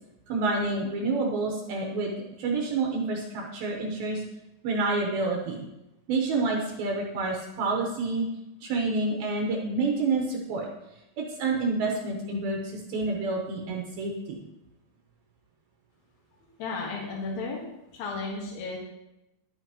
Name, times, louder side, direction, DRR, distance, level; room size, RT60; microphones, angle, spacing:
voice 1, 0.3-4.2 4.6-5.7 6.1-8.3 8.6-10.7 11.2-14.5, right 3 dB, 75° right, 0 dB, 2.7 m, -28 dB
voice 2, 16.4-17.6 17.9-18.8, left 3 dB, 70° left, -3 dB, 3.1 m, -34 dB
11.0 x 9.2 x 2.9 m, 0.91 s
omnidirectional pair, 4.7 m